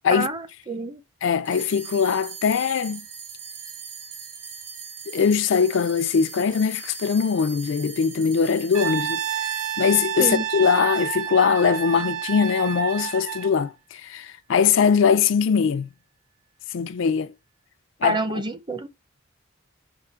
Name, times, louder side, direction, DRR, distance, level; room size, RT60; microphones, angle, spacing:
voice 1, 0.1-1.0 10.2-10.4 18.0-18.9, right 2 dB, 20° right, 0.7 m, -28 dB
voice 2, 1.2-3.1 5.1-15.9 16.7-17.3 18.0-18.4, left 6 dB, 65° left, 0.4 m, -22 dB
sound 1, 1.4-12.1, right 6 dB, 55° right, 1.5 m, -41 dB
Brass instrument, 8.7-13.6, right 10 dB, 80° right, 0.8 m, -29 dB
5.1 x 3.7 x 5.5 m
head